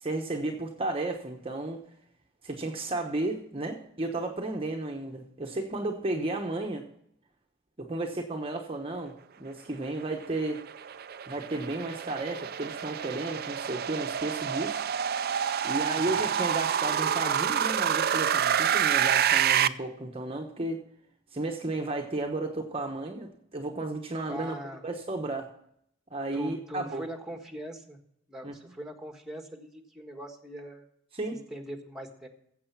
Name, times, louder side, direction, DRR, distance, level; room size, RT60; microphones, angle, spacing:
voice 1, 0.0-1.8 2.4-6.9 7.8-10.6 11.3-14.8 15.6-20.8 21.3-24.6 24.8-25.5 26.1-27.0 28.4-28.5 31.1-31.4, right 2 dB, 30° right, 2 dB, 1.0 m, -33 dB
sound 1, 10.1-19.7, right 9 dB, 50° right, 0.5 m, -28 dB
voice 2, 15.9-16.3 24.3-24.8 26.3-28.0 28.3-30.9 31.5-32.3, right 1 dB, ahead, 4 dB, 1.5 m, -41 dB
15.0 x 7.7 x 5.8 m, 0.71 s
head